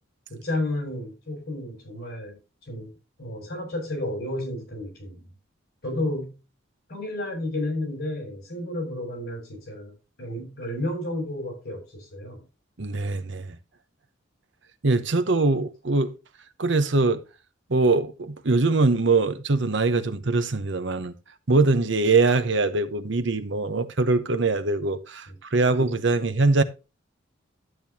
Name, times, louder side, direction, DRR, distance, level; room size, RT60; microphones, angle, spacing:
voice 1, 0.3-2.4 2.7-2.9 3.2-5.3 5.8-6.4 6.9-9.9 10.2-12.4, left 1 dB, 50° left, 7.1 m, -31 dB
voice 2, 12.8-13.5 14.8-16.1 16.6-17.2 17.7-21.1 21.5-26.6, right 3 dB, 60° right, 0.9 m, -22 dB
12.5 x 9.0 x 2.8 m
head